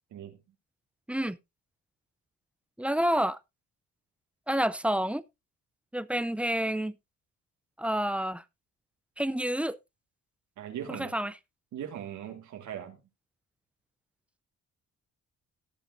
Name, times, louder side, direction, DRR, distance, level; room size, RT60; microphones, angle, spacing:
voice 1, 2.8-3.4 4.5-5.2 5.9-6.9 7.8-8.4 9.2-9.8 10.9-11.3, right 1 dB, 5° right, 0.5 m, -28 dB
voice 2, 10.6-11.1 11.7-13.0, right 10 dB, 75° right, 1.9 m, -39 dB
18.0 x 7.2 x 2.5 m
cardioid pair, 90°, 30 cm